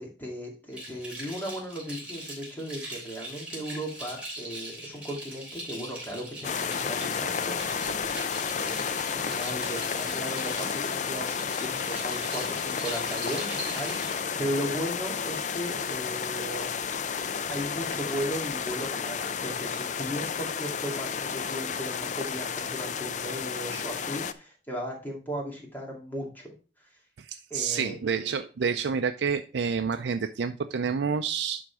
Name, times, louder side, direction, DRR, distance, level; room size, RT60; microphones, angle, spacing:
voice 1, 0.0-16.7 17.5-26.4 27.5-28.0, equal, 10° left, -1 dB, 2.2 m, -36 dB
sound 1, 0.7-14.1, right 1 dB, 5° right, 3.3 m, -41 dB
sound 2, 6.4-24.3, left 6 dB, 40° left, 0.5 m, -32 dB
voice 2, 27.2-31.6, right 6 dB, 75° right, 7 dB, 0.4 m, -29 dB
11.0 x 3.9 x 4.7 m, 0.36 s
head